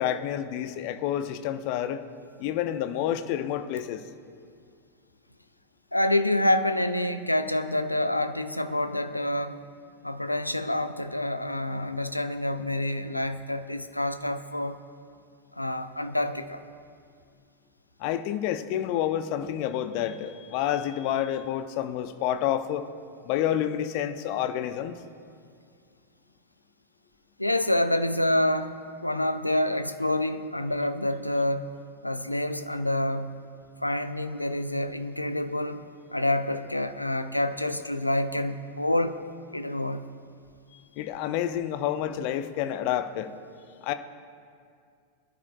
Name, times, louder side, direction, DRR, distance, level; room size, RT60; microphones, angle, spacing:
voice 1, 0.0-2.0 2.4-4.0 18.0-22.9 23.2-25.0 41.0-43.3 43.8-43.9, left 10 dB, 45° left, 10 dB, 0.6 m, -29 dB
voice 2, 5.9-9.6 10.0-14.8 15.6-16.6 27.4-31.7 32.0-33.3 33.8-35.8 36.1-39.2 39.5-40.0, left 1 dB, 85° left, 10 dB, 0.5 m, -27 dB
21.0 x 11.0 x 2.4 m, 2.3 s
figure-of-eight pair, 90°, 0 cm